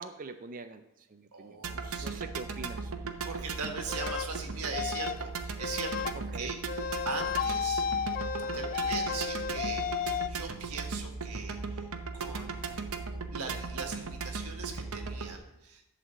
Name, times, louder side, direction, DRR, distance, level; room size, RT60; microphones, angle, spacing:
voice 1, 0.0-3.1 6.3-6.5 8.4-8.7, right 3 dB, 40° right, 8 dB, 0.5 m, -45 dB
voice 2, 1.3-2.2 3.2-8.0 8.5-9.8 10.1-11.9 12.1-12.8 13.3-15.9, right 4 dB, 90° right, 4 dB, 1.5 m, -40 dB
sound 1, 1.6-15.4, right 4 dB, 65° right, 0.9 m, -37 dB
sound 2, 3.9-4.3 4.7-5.2 5.6-6.1 6.7-10.3, left 7 dB, 40° left, 0.4 m, -33 dB
11.0 x 4.2 x 7.2 m, 0.90 s
head